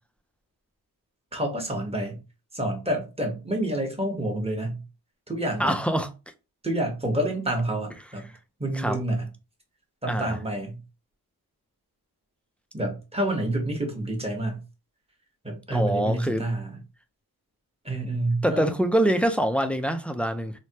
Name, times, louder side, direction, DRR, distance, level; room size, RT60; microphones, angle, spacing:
voice 1, 1.3-2.2 2.5-4.8 5.3-5.8 6.6-8.3 8.6-9.3 10.0-10.8 12.7-14.6 15.4-16.8 17.8-18.7, right 1 dB, 15° right, 1.0 m, -28 dB
voice 2, 5.6-6.1 8.7-9.0 10.1-10.3 15.7-16.4 18.4-20.5, right 1 dB, 5° left, 0.3 m, -24 dB
3.1 x 2.1 x 2.8 m
cardioid pair, 65°, 39 cm